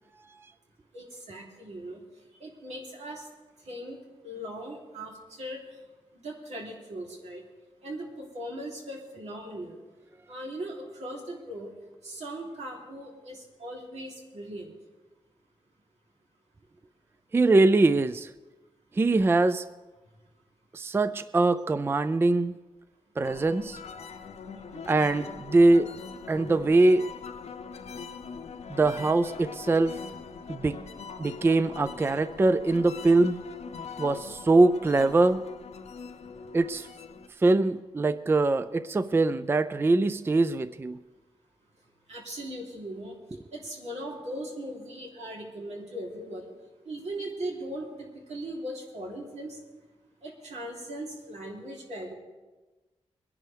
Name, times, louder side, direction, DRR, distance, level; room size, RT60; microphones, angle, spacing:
voice 1, 0.9-2.0 2.4-3.3 3.7-5.6 6.1-7.4 7.8-9.8 10.3-11.7 12.0-14.7 24.6-24.8 42.1-43.2 43.5-46.5 46.8-47.9 48.3-49.6 50.2-52.1, right 1 dB, 85° right, -2 dB, 3.2 m, -39 dB
voice 2, 17.3-18.3 19.0-19.6 20.7-22.5 23.2-23.8 24.9-25.9 26.3-27.0 28.7-29.9 30.5-30.8 31.2-33.4 34.0-35.4 36.5-36.9 37.4-41.0, right 2 dB, 20° right, 13 dB, 0.3 m, -23 dB
sound 1, 23.2-37.3, left 5 dB, 75° left, 0.7 m, -42 dB
23.0 x 10.5 x 3.4 m, 1.2 s
wide cardioid pair, 135°, 11 cm